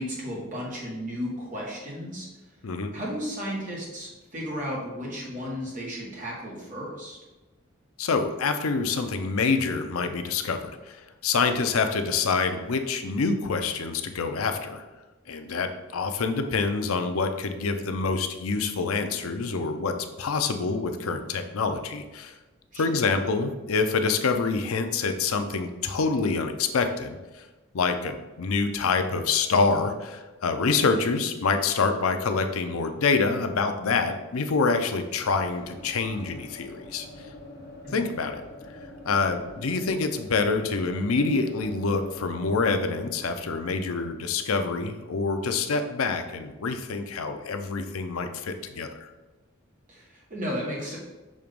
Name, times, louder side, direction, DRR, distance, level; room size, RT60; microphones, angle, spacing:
voice 1, 0.0-2.3 2.9-7.2 22.7-23.0 37.8-38.0 49.9-51.0, equal, 35° right, -4 dB, 1.7 m, -34 dB
voice 2, 8.0-14.8 15.3-22.3 22.8-27.2 27.7-37.1 37.9-38.4 39.1-49.1, left 4 dB, 85° left, 7 dB, 0.6 m, -26 dB
sound 1, 35.1-46.9, left 1 dB, 50° left, 1.1 m, -46 dB
6.4 x 2.9 x 5.2 m, 1.1 s
head